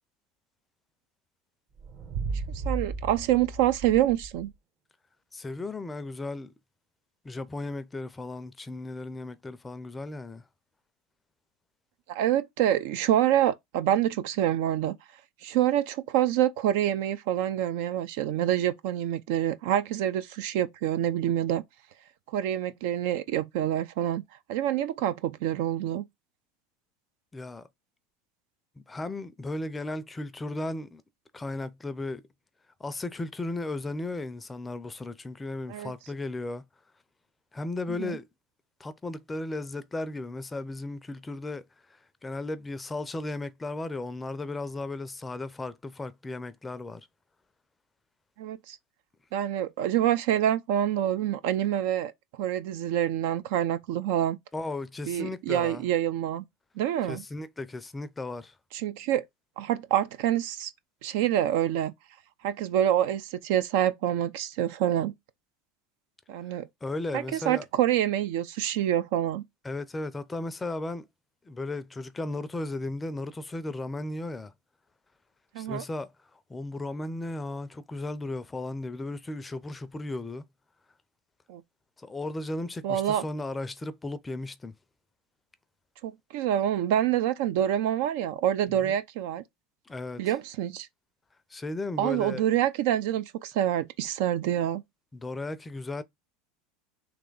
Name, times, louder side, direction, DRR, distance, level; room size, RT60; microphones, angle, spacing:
sound 1, 1.7-4.6, right 4 dB, 50° right, 1.0 m, -35 dB
voice 1, 2.5-4.5 12.1-15.0 15.4-21.6 22.3-24.2 24.5-26.0 35.7-35.9 37.9-38.2 48.4-48.8 49.3-52.1 52.4-54.4 55.1-56.4 56.8-57.2 58.7-59.2 59.6-60.7 61.0-61.9 62.4-65.1 66.3-66.7 67.1-69.4 75.5-75.8 81.5-81.6 82.8-83.2 86.0-89.4 90.2-90.9 92.0-94.8, right 11 dB, 70° right, 0.4 m, -26 dB
voice 2, 5.3-6.5 7.2-10.5 27.3-27.7 28.8-31.0 31.3-32.2 32.8-36.6 37.5-38.2 38.8-47.1 54.5-55.8 57.1-58.5 66.8-67.6 69.6-71.1 71.5-74.5 75.6-80.5 82.0-84.7 88.7-88.9 89.9-90.2 91.5-92.4 95.1-96.0, left 2 dB, 15° left, 0.5 m, -35 dB
3.3 x 2.9 x 3.9 m
hypercardioid pair, 95°, 0 cm